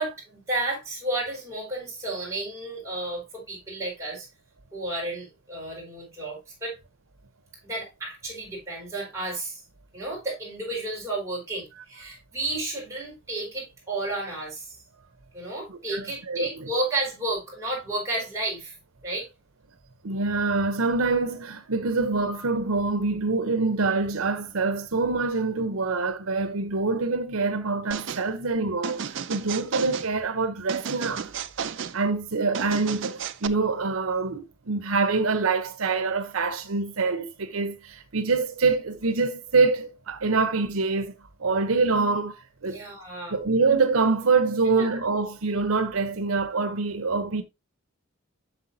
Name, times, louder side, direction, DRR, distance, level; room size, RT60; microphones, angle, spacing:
voice 1, 0.0-4.3 4.7-6.8 7.6-9.6 9.9-14.8 15.3-18.7 19.0-19.3 42.6-43.4 44.7-45.0, right 2 dB, 15° right, 5.0 m, -32 dB
voice 2, 15.7-16.7 20.0-31.3 31.9-41.1 41.4-42.4 42.6-42.8 43.3-47.4, right 4 dB, 90° right, 0.9 m, -25 dB
sound 1, 27.9-28.3 28.8-30.1 30.7-32.0 32.5-33.5, right 7 dB, 60° right, 0.5 m, -33 dB
8.3 x 6.7 x 2.7 m
head